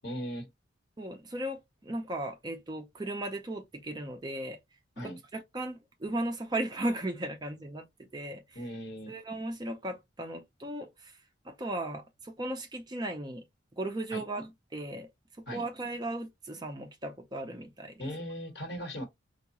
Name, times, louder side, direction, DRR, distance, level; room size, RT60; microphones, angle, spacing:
voice 1, 0.0-0.5 5.0-5.2 8.5-9.1 14.1-14.2 15.5-15.6 18.0-19.0, equal, 55° left, 1.2 m, -38 dB
voice 2, 1.0-4.6 5.0-7.9 8.1-8.6 9.1-11.2 11.4-13.4 13.8-15.1 15.5-18.0, right 1 dB, 20° right, 0.4 m, -36 dB
4.7 x 2.3 x 2.8 m
head